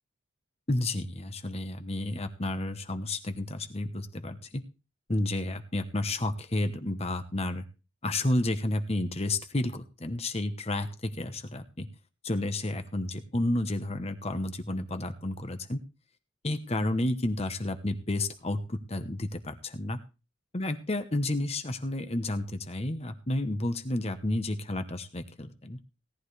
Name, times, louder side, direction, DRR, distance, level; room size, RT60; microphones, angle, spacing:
voice 1, 0.7-4.6 5.1-7.6 8.0-11.9 12.2-15.8 16.4-20.0 20.5-25.8, left 1 dB, 30° left, 8 dB, 1.0 m, -31 dB
17.5 x 11.0 x 3.3 m, 0.31 s
head